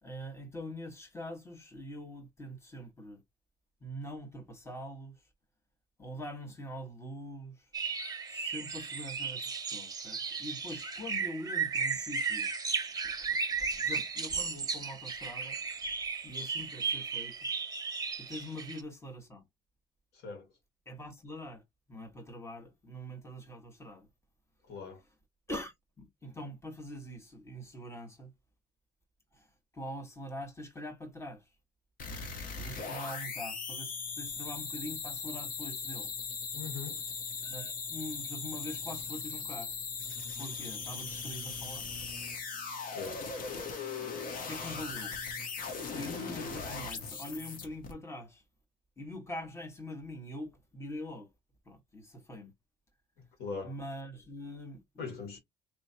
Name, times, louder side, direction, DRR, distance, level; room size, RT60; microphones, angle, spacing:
voice 1, 0.0-3.2 3.8-5.3 6.0-7.7 8.3-12.6 13.0-15.9 16.2-17.5 18.2-19.5 20.8-21.6 21.9-24.1 25.5-28.3 29.3-31.5 32.6-36.1 37.4-39.7 40.4-41.9 44.0-44.1 44.4-45.2 45.9-48.4 49.0-51.3 51.6-52.5 53.6-55.2, equal, 15° left, 1.7 m, -44 dB
sound 1, 7.7-18.8, right 5 dB, 20° right, 1.0 m, -35 dB
voice 2, 20.1-20.5 24.6-25.0 36.5-37.0 42.9-43.3 53.4-53.7 55.0-55.4, left 5 dB, 75° left, 1.9 m, -40 dB
sound 2, 32.0-47.9, left 5 dB, 55° left, 1.5 m, -39 dB
4.7 x 3.0 x 2.8 m
cardioid pair, 110°, 17 cm